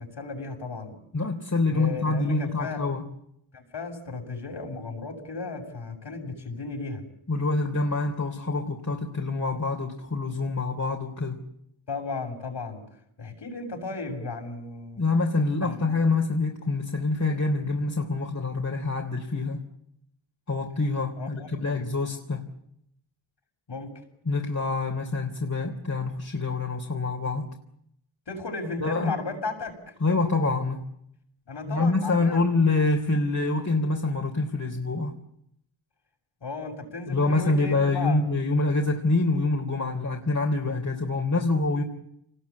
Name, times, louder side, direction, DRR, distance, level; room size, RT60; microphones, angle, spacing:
voice 1, 0.0-1.0 1.7-2.8 3.5-7.0 11.9-12.8 13.2-15.0 15.6-16.1 21.2-21.9 23.7-24.0 28.3-30.0 31.5-32.4 36.4-38.2, left 3 dB, 65° left, 3 dB, 7.1 m, -35 dB
voice 2, 1.1-3.0 7.3-11.4 15.0-19.6 20.5-22.4 24.3-27.5 28.8-29.2 30.0-30.8 31.7-35.1 37.1-41.8, left 3 dB, 40° left, 1 dB, 3.7 m, -26 dB
28.5 x 20.5 x 8.6 m, 0.76 s
cardioid pair, 70°, 46 cm